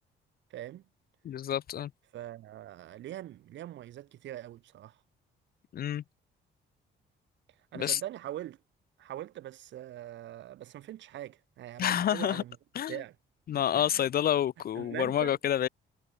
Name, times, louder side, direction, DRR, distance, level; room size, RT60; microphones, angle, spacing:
voice 1, 0.5-0.8 2.1-5.0 7.7-8.6 9.0-12.6 12.9-13.2 13.5-14.0 14.7-15.3, right 13 dB, 65° right, 0.7 m, -42 dB
voice 2, 1.2-1.9 5.7-6.0 7.7-8.0 11.8-12.4 12.8-13.0 13.5-15.7, left 10 dB, 50° left, 0.5 m, -28 dB
cardioid pair, 90°, 20 cm